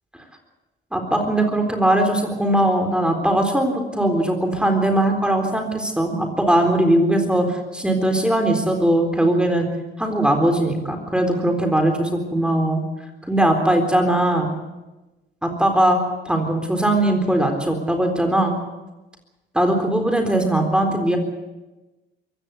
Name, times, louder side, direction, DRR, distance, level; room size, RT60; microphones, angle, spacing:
voice 1, 0.9-9.7 10.0-12.8 13.3-14.5 15.4-16.0 16.3-18.6 19.5-21.2, right 1 dB, 5° right, 4 dB, 3.9 m, -20 dB
23.5 x 16.5 x 8.3 m, 1.1 s
cardioid pair, 90°, 20 cm